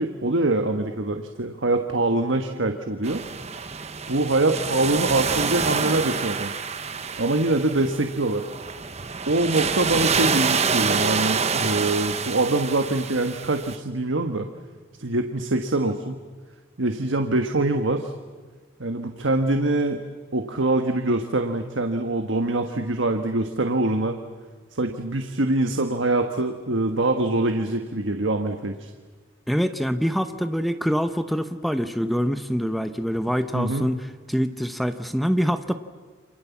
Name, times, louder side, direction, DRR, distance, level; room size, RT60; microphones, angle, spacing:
voice 1, 0.0-3.2 4.1-6.5 7.2-8.4 9.3-14.5 15.0-16.2 16.8-18.1 18.8-20.0 20.3-24.2 24.7-28.9 33.5-33.9, right 2 dB, 80° right, 5 dB, 1.5 m, -24 dB
sound 1, 3.0-13.7, right 5 dB, 35° right, 1.1 m, -27 dB
voice 2, 29.5-34.0 34.3-35.7, equal, ahead, 9 dB, 0.9 m, -25 dB
29.5 x 26.5 x 7.3 m, 1.5 s
head